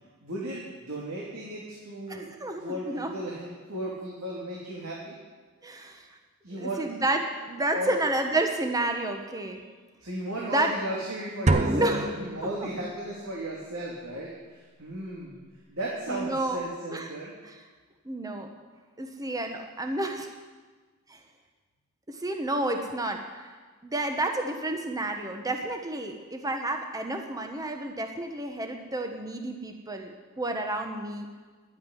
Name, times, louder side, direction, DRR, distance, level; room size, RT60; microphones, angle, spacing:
voice 1, 0.2-2.3 2.6-5.1 6.4-6.8 7.7-8.0 10.0-15.4 15.7-17.3, right 1 dB, 75° right, -5 dB, 2.8 m, -35 dB
voice 2, 2.1-3.1 5.6-6.2 6.5-9.6 10.4-10.7 11.7-12.1 12.4-12.7 16.1-16.6 16.9-17.1 17.4-17.6 18.0-18.5 19.0-20.3 21.1-21.2 22.1-23.6 23.8-31.3, right 2 dB, 15° right, 4 dB, 1.1 m, -30 dB
sound 1, 11.5-13.1, right 2 dB, 35° right, 0.9 m, -27 dB
11.0 x 8.8 x 9.8 m, 1.4 s
head